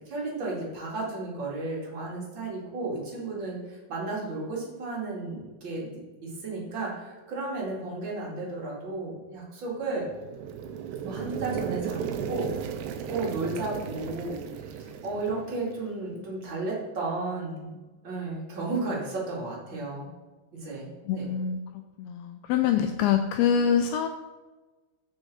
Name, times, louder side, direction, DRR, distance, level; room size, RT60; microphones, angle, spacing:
voice 1, 0.1-10.1 11.0-12.0 12.3-14.4 14.7-17.8 18.0-20.1 20.5-20.9 21.1-21.3, right 3 dB, 35° right, -4 dB, 2.2 m, -33 dB
sound 1, 9.9-15.9, right 8 dB, 85° right, 2.9 m, -35 dB
voice 2, 21.1-24.1, left 8 dB, 85° left, 6 dB, 2.2 m, -25 dB
14.0 x 5.2 x 4.2 m, 1.2 s
omnidirectional pair, 4.8 m